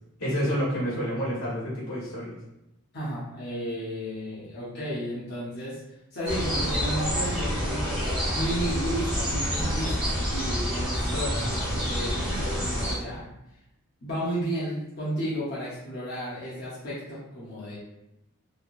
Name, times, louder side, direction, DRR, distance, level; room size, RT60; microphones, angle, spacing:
voice 1, 0.2-2.3, equal, 90° left, -7 dB, 1.4 m, -28 dB
voice 2, 2.9-5.8 6.1-8.0 8.3-13.3 14.0-17.8, equal, 45° left, -9 dB, 0.8 m, -33 dB
sound 1, 6.3-12.9, equal, 5° right, 0.7 m, -28 dB
3.1 x 2.3 x 2.5 m, 0.86 s
head